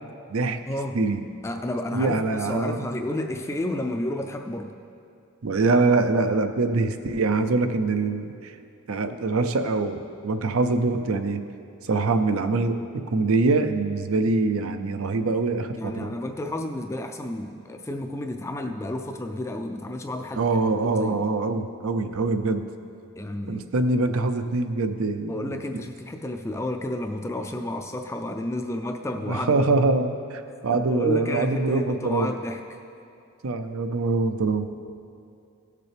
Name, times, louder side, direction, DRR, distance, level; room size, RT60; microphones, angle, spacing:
voice 1, 0.7-1.0 1.4-4.8 15.8-20.5 20.8-21.2 23.2-23.7 25.3-29.7 30.7-32.8, left 1 dB, 15° left, 5 dB, 0.3 m, -31 dB
voice 2, 1.9-2.9 5.4-8.5 8.9-11.4 11.9-12.8 13.1-16.1 20.4-22.7 23.5-25.6 29.3-32.3 33.4-34.7, right 3 dB, 80° right, 9 dB, 0.6 m, -24 dB
16.5 x 6.7 x 3.4 m, 2.5 s
head